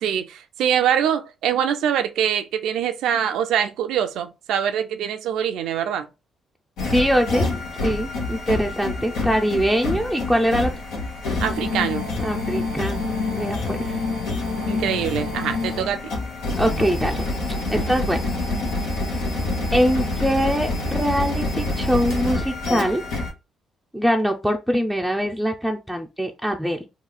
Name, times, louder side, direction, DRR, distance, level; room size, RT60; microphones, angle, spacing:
voice 1, 0.0-6.1 11.4-12.1 14.7-16.0, right 9 dB, 85° right, 0.4 m, -24 dB
sound 1, 6.8-23.3, left 2 dB, 90° left, 1.0 m, -27 dB
voice 2, 6.9-7.5 7.8-10.7 12.2-14.0 16.6-17.2 17.7-18.2 19.7-23.0 23.9-26.9, equal, ahead, 0.4 m, -23 dB
3.1 x 2.3 x 3.7 m
cardioid pair, 90°, 0 cm